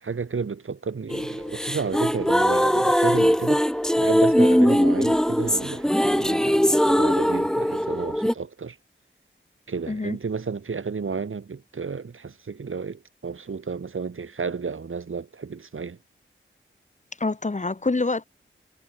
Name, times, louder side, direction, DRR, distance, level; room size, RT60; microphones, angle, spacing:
voice 1, 0.0-3.6 4.0-8.8 9.7-16.0, right 5 dB, 75° right, 2.6 m, -32 dB
sound 1, 1.1-8.3, equal, 5° left, 1.5 m, -21 dB
voice 2, 9.9-10.2 17.2-18.2, left 3 dB, 35° left, 2.1 m, -26 dB
wide cardioid pair, 100°, 21 cm